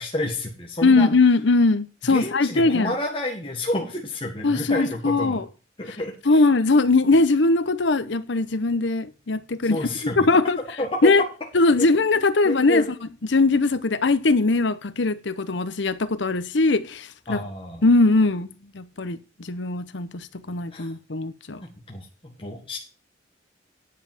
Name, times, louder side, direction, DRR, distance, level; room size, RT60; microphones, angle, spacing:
voice 1, 0.0-1.1 2.0-5.4 5.8-6.4 9.7-10.3 10.8-11.1 12.5-12.9 17.3-17.8 20.7-20.9 21.6-22.8, left 1 dB, 30° left, 1.7 m, -30 dB
voice 2, 0.8-2.9 4.4-5.4 6.3-9.8 10.2-10.6 11.0-11.2 11.5-12.8 13.3-17.4 17.8-21.6, left 3 dB, 65° left, 0.8 m, -20 dB
10.0 x 5.6 x 7.2 m
head